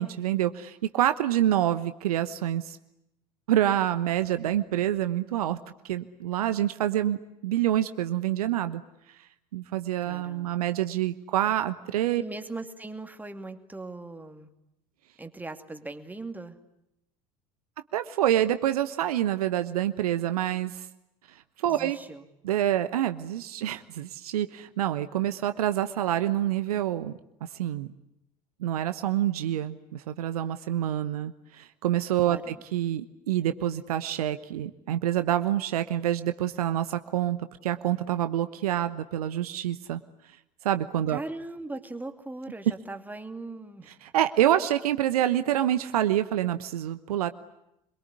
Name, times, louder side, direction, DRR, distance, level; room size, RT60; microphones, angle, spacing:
voice 1, 0.0-2.8 3.5-5.6 5.9-7.2 7.4-8.8 9.5-12.2 17.9-20.9 21.6-22.0 22.4-27.1 27.5-27.9 28.6-37.4 37.6-40.0 40.6-41.2 44.0-47.3, right 12 dB, 65° right, 11 dB, 1.1 m, -27 dB
voice 2, 10.0-10.7 12.2-14.5 15.2-16.6 21.7-22.2 32.3-32.6 41.1-43.9, right 2 dB, 10° right, 7 dB, 2.5 m, -39 dB
25.5 x 23.0 x 9.8 m, 0.84 s
figure-of-eight pair, 70°, 20 cm